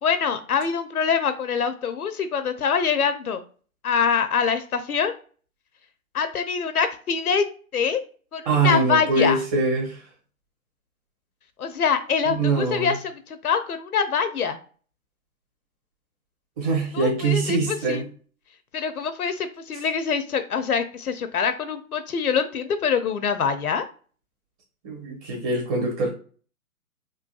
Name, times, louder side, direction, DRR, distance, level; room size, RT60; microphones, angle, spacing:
voice 1, 0.0-3.4 3.8-5.1 6.1-8.0 8.3-9.4 11.6-14.6 16.9-18.0 18.7-23.8, left 6 dB, 80° left, 10 dB, 0.7 m, -24 dB
voice 2, 8.5-10.0 12.2-12.9 16.6-18.0 24.8-26.1, right 3 dB, 25° right, -1 dB, 1.1 m, -23 dB
3.8 x 2.2 x 2.4 m, 0.40 s
figure-of-eight pair, 135°, 43 cm